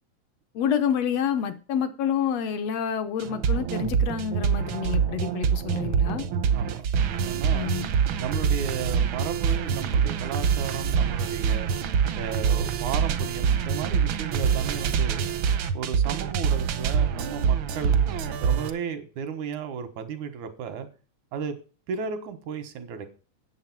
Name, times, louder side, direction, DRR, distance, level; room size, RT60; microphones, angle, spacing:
voice 1, 0.6-6.3 7.5-7.9, left 8 dB, 70° left, 1.9 m, -28 dB
sound 1, 3.2-18.7, right 7 dB, 70° right, 1.2 m, -25 dB
voice 2, 6.5-7.7 8.2-11.7 12.2-15.3 15.7-18.0 18.4-20.9 21.3-21.6 21.9-23.1, right 7 dB, 90° right, 2.7 m, -34 dB
8.9 x 7.4 x 5.9 m
omnidirectional pair, 3.3 m